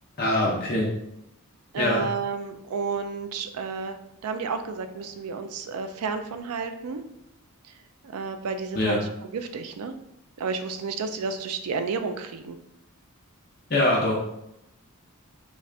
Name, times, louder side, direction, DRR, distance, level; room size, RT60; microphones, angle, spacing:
voice 1, 0.2-0.9 1.8-2.1 8.7-9.0 13.7-14.2, left 1 dB, 45° left, -4 dB, 0.7 m, -23 dB
voice 2, 1.7-4.0 4.2-7.0 8.1-9.9 10.4-12.6, right 5 dB, 80° right, 8 dB, 0.4 m, -31 dB
4.0 x 2.4 x 3.3 m, 0.82 s
head